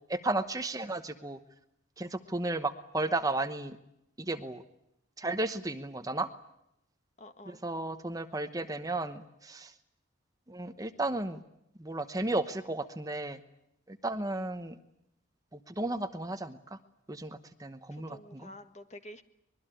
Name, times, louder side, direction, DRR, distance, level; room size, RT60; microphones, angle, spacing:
voice 1, 0.1-1.4 2.0-3.8 4.2-4.6 5.2-6.3 7.5-9.7 10.5-11.4 11.8-13.4 13.9-14.7 15.5-16.6 17.1-18.5, right 2 dB, 20° right, 9 dB, 1.0 m, -34 dB
voice 2, 7.2-7.6 17.9-19.2, left 1 dB, 35° left, 8 dB, 1.8 m, -49 dB
24.5 x 21.5 x 9.0 m, 0.82 s
head